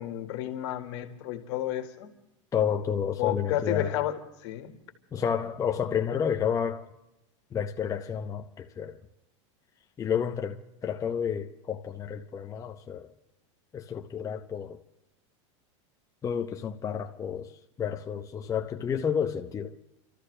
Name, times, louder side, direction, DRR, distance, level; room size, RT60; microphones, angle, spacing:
voice 1, 0.0-2.1 3.2-4.1 4.4-4.7 5.1-5.2, left 12 dB, 65° left, 1.9 m, -31 dB
voice 2, 2.5-4.0 5.1-6.9 7.5-9.0 10.0-13.1 13.7-14.8 16.2-17.5 17.8-19.7, left 7 dB, 20° left, 0.8 m, -30 dB
30.0 x 13.5 x 3.3 m
supercardioid pair, 130°, 16 cm